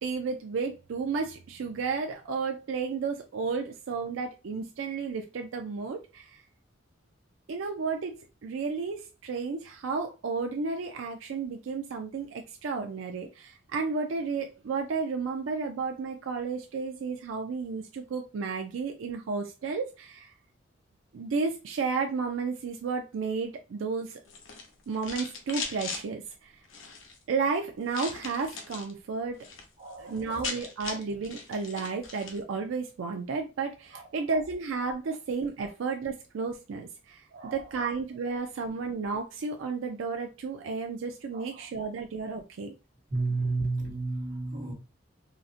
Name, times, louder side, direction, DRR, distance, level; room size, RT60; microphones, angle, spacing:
voice 1, 0.0-6.4 7.5-8.1 8.4-20.3 21.1-24.2 24.9-26.6 27.3-29.4 30.0-37.3 37.5-42.7, right 4 dB, 90° right, 0.4 m, -32 dB
sound 1, 24.2-26.0 26.6-27.2 27.9-28.9 29.3-29.7 29.9-30.0 30.2-32.4, left 4 dB, 85° left, 0.7 m, -39 dB
voice 2, 29.8-30.4 33.9-34.2 37.3-37.9 41.3-41.7 43.1-44.7, right 3 dB, 50° right, 1.1 m, -33 dB
3.9 x 2.1 x 2.5 m
head